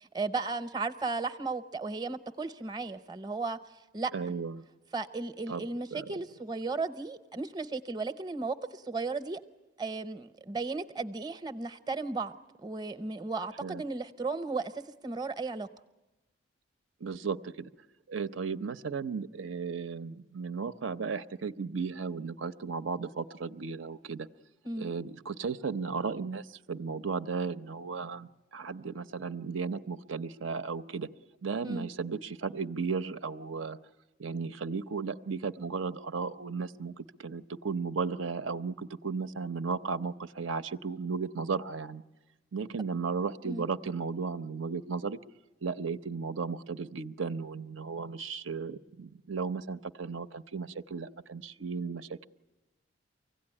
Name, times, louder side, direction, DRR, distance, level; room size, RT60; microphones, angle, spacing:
voice 1, 0.0-3.6 3.9-4.1 4.9-9.4 9.8-12.3 12.6-15.7 24.6-24.9 31.6-31.9 43.5-43.7, right 3 dB, 20° right, 11 dB, 0.7 m, -35 dB
voice 2, 4.1-4.6 5.5-5.7 5.9-6.2 13.6-13.8 17.0-17.7 18.1-24.3 24.8-31.1 31.4-33.8 34.2-42.0 42.5-45.2 45.6-52.3, right 5 dB, 80° right, 12 dB, 0.7 m, -35 dB
24.5 x 16.5 x 9.9 m, 1.1 s
head